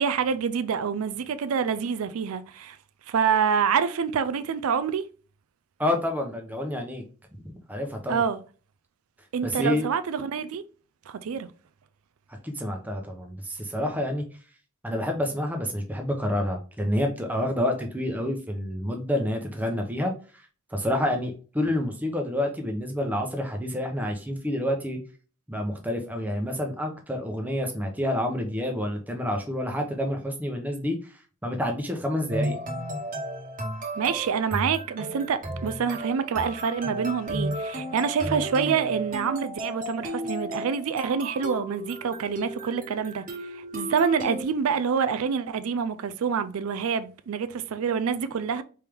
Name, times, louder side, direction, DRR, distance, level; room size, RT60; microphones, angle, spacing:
voice 1, 0.0-2.8 3.1-5.0 8.1-8.4 9.3-10.6 11.1-11.5 34.0-48.6, right 6 dB, 80° right, 0.4 m, -27 dB
voice 2, 5.8-7.0 7.7-8.2 9.4-9.9 12.4-14.2 14.8-20.1 20.7-25.0 25.5-31.0 31.4-32.6, left 1 dB, 5° right, 0.7 m, -28 dB
sound 1, 32.3-44.4, right 1 dB, 35° right, 1.1 m, -34 dB
4.4 x 3.4 x 3.5 m
head